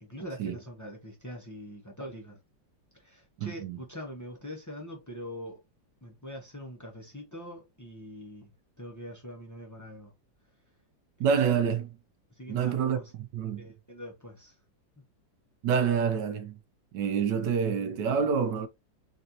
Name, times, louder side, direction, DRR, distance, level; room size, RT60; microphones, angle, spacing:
voice 1, 0.0-2.4 3.0-5.6 6.0-8.5 8.8-10.1 11.2-11.4 12.4-13.1 13.6-14.5, equal, 25° left, 0.3 m, -43 dB
voice 2, 3.4-3.8 11.2-12.0 12.5-13.7 15.6-16.6 16.9-18.7, right 6 dB, 75° right, 1.3 m, -27 dB
4.1 x 2.6 x 2.8 m
omnidirectional pair, 2.0 m